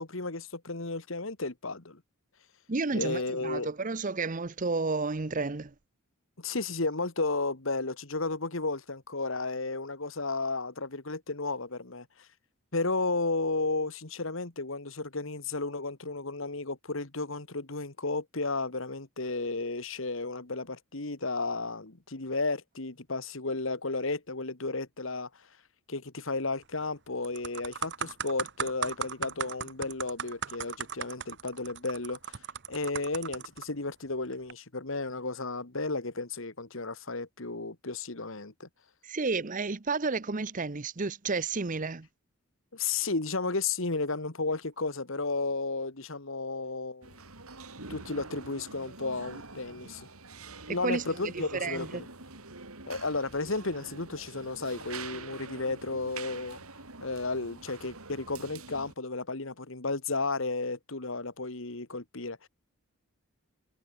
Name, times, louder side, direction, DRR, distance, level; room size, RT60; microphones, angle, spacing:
voice 1, 0.0-2.0 2.9-3.7 6.4-12.3 12.7-25.5 25.9-32.4 32.7-38.7 42.7-47.1 47.9-50.1 50.7-52.1 52.9-56.6 57.0-62.5, left 3 dB, 65° left, 1.9 m, -33 dB
voice 2, 2.7-5.7 39.0-42.1 50.7-51.9, right 4 dB, 40° right, 0.8 m, -31 dB
sound 1, 26.6-26.9 27.2-33.6 34.3-34.5, right 7 dB, 55° right, 1.4 m, -37 dB
sound 2, 47.0-58.9, right 3 dB, 90° right, 6.2 m, -45 dB
head